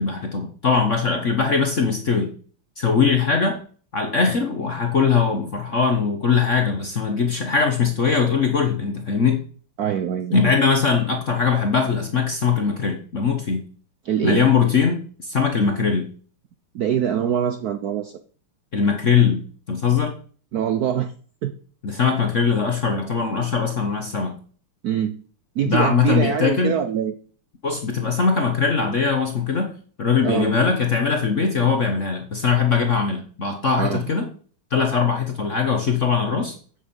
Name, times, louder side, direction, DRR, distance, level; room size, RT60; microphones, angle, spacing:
voice 1, 0.0-2.3 2.8-3.6 3.9-9.5 10.3-13.6 14.2-16.1 18.7-20.2 21.8-24.3 25.7-26.7 27.6-29.7 30.0-34.3 34.7-36.5, left 5 dB, 45° left, 4 dB, 1.2 m, -21 dB
voice 2, 9.8-10.5 14.0-14.5 16.7-18.2 20.5-21.1 21.4-21.5 24.8-25.2 25.6-27.1 30.2-30.5 33.8-34.0, right 9 dB, 75° right, 10 dB, 0.8 m, -24 dB
9.1 x 7.4 x 5.4 m, 0.43 s
omnidirectional pair, 2.4 m